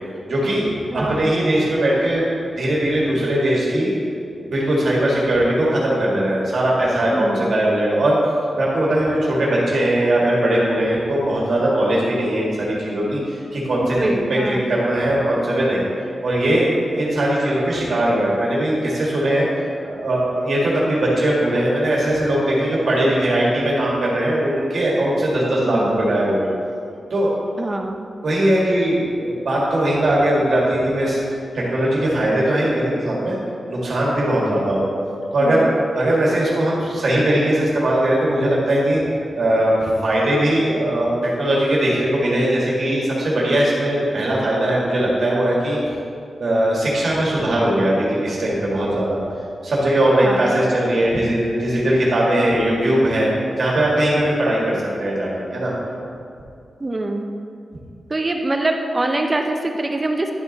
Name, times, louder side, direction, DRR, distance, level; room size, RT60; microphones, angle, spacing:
voice 1, 0.3-0.7 0.9-2.3 2.6-3.9 4.4-8.2 8.6-15.8 16.2-19.5 19.8-26.5 27.1-27.3 28.2-31.2 31.5-33.4 33.7-34.9 35.3-39.0 39.4-45.8 46.4-49.2 49.6-53.3 53.6-55.7, right 1 dB, 60° right, -5 dB, 1.9 m, -19 dB
voice 2, 0.9-1.3 7.1-7.5 13.9-14.6 25.7-26.0 27.6-28.1 35.4-35.8 50.1-50.5 56.8-57.2 58.1-60.3, right 2 dB, 25° right, 4 dB, 0.5 m, -24 dB
11.0 x 4.8 x 4.1 m, 2.5 s
wide cardioid pair, 145°, 0 cm